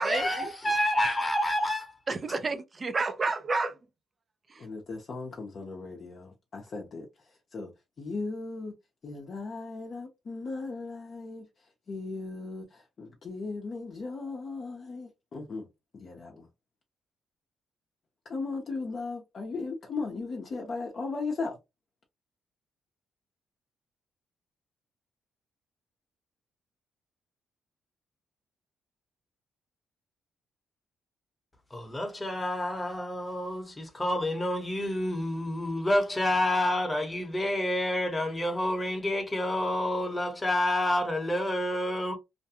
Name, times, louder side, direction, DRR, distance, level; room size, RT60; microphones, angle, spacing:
voice 1, 0.0-2.0 31.7-42.2, left 1 dB, 15° left, 0.9 m, -28 dB
voice 2, 2.1-3.8 4.5-4.7, right 3 dB, 30° right, 0.4 m, -30 dB
voice 3, 4.6-7.7 8.0-8.7 9.0-15.7 15.9-16.5 18.2-21.6, left 3 dB, 45° left, 0.6 m, -37 dB
2.5 x 2.2 x 2.7 m
cardioid pair, 90°, 0 cm